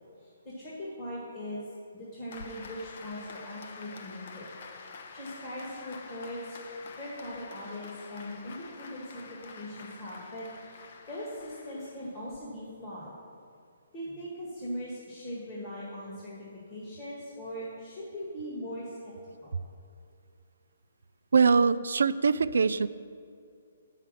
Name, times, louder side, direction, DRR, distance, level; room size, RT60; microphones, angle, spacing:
voice 1, 0.2-1.7 1.9-4.5 5.1-6.6 7.0-10.8 11.1-13.1 13.9-19.1 19.4-19.6, equal, 25° left, -6 dB, 1.6 m, -40 dB
Applause, 2.3-12.4, left 4 dB, 50° left, 0.8 m, -47 dB
voice 2, 21.3-22.9, right 5 dB, 80° right, 15 dB, 0.3 m, -23 dB
6.9 x 5.7 x 7.5 m, 2.4 s
hypercardioid pair, 160°, 0 cm